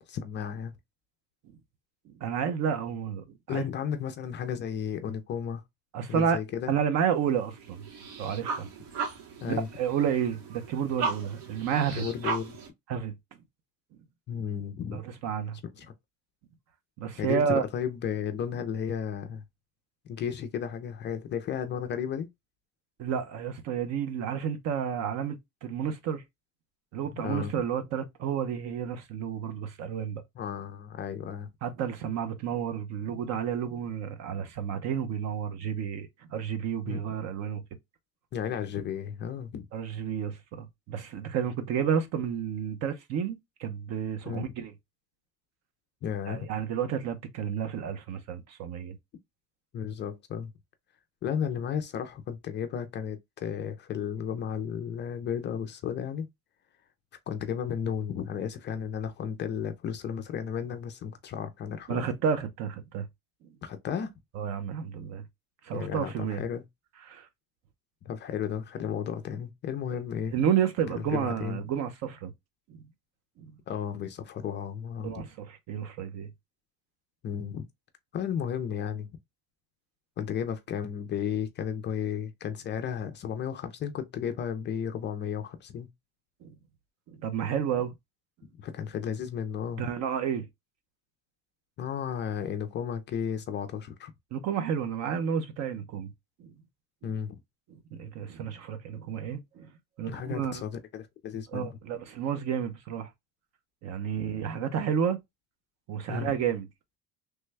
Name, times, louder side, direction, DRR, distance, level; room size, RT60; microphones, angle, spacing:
voice 1, 0.1-0.7 3.5-5.6 6.1-6.7 9.4-9.7 12.0-12.6 14.3-15.0 15.8-15.9 17.2-19.4 20.1-22.3 27.2-27.5 30.4-31.5 36.9-37.0 38.3-39.7 44.2-44.5 46.0-46.5 49.7-50.5 51.2-56.3 57.3-62.1 63.6-64.1 65.7-66.6 68.1-70.3 71.0-71.6 73.7-75.3 77.2-77.7 78.1-79.1 80.2-85.9 88.6-89.8 91.8-94.1 97.0-97.4 100.1-101.8 106.1-106.3, left 8 dB, 30° left, 0.4 m, -33 dB
voice 2, 2.1-3.6 5.9-6.4 6.7-7.9 8.2-8.7 9.5-12.0 12.9-13.1 14.9-15.6 17.0-17.6 23.0-26.2 26.9-30.2 31.6-37.6 39.7-44.7 46.3-49.0 61.9-63.1 64.4-65.2 65.6-66.4 67.1-67.3 70.3-72.3 75.0-76.3 86.4-86.5 87.2-87.9 89.8-90.5 94.3-96.1 96.4-96.5 97.9-99.7 100.0-100.6 101.5-103.1 103.8-105.2 105.9-106.7, right 8 dB, 45° right, 0.7 m, -31 dB
sound 1, 7.2-12.7, right 5 dB, 65° right, 1.2 m, -37 dB
3.2 x 2.2 x 3.2 m
cardioid pair, 135°, 36 cm